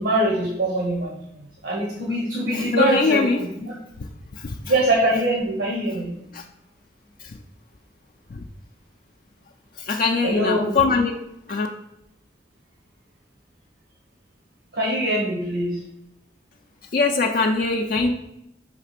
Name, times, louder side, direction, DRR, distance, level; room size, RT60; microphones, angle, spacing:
voice 1, 0.0-3.5 4.6-6.1 10.2-10.7 14.7-15.8, right 1 dB, 85° right, -1 dB, 1.3 m, -23 dB
voice 2, 2.5-3.4 4.3-4.5 6.3-6.4 7.2-7.3 8.3-8.4 9.8-11.2 11.5-11.7 16.9-18.1, left 4 dB, 50° left, 3 dB, 0.4 m, -22 dB
5.8 x 3.3 x 5.8 m, 0.81 s
head